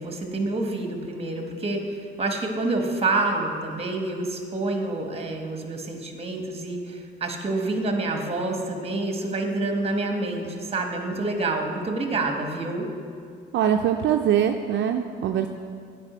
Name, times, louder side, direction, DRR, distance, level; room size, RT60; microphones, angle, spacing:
voice 1, 0.0-12.9, right 2 dB, 30° right, 3 dB, 1.2 m, -28 dB
voice 2, 13.5-15.5, right 9 dB, 65° right, 5 dB, 0.4 m, -22 dB
9.6 x 4.8 x 4.9 m, 2.3 s
cardioid pair, 90°, 20 cm